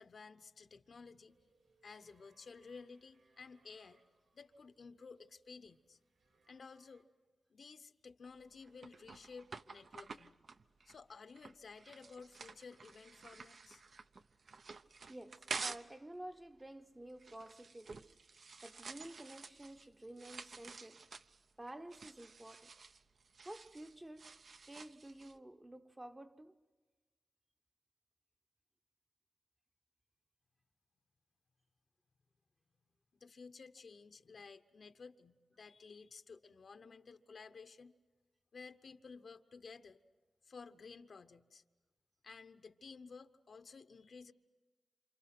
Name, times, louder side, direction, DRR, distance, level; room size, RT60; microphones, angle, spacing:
voice 1, 0.0-1.5 1.8-4.0 4.3-6.0 6.5-7.1 7.5-10.4 10.9-13.8 33.2-37.9 38.5-40.0 40.4-41.6 42.2-44.3, left 4 dB, 65° left, 1.0 m, -54 dB
sound 1, 1.3-7.0, right 3 dB, 80° right, 5.0 m, -74 dB
sound 2, 8.2-16.0 16.3-25.4, right 4 dB, 60° right, 0.7 m, -50 dB
voice 2, 15.1-18.2 18.6-21.0 21.6-22.7 23.4-26.6, right 1 dB, 15° right, 0.9 m, -51 dB
29.0 x 27.5 x 6.0 m
wide cardioid pair, 120°, 0 cm